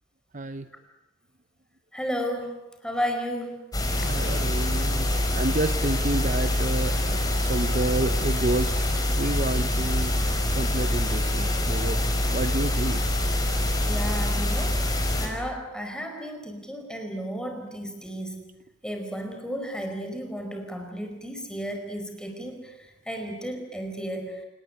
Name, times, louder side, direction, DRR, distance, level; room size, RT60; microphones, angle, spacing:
voice 1, 0.3-0.7 3.9-10.1 10.5-12.0 12.3-13.0, right 2 dB, 40° right, 10 dB, 0.9 m, -30 dB
voice 2, 1.9-2.5 2.8-3.6 13.8-14.8 15.2-18.5 18.8-22.7 23.0-24.3, equal, 5° left, 4 dB, 5.0 m, -33 dB
sound 1, 3.7-15.3, left 1 dB, 20° left, 5.1 m, -25 dB
28.0 x 19.0 x 9.8 m, 1.0 s
head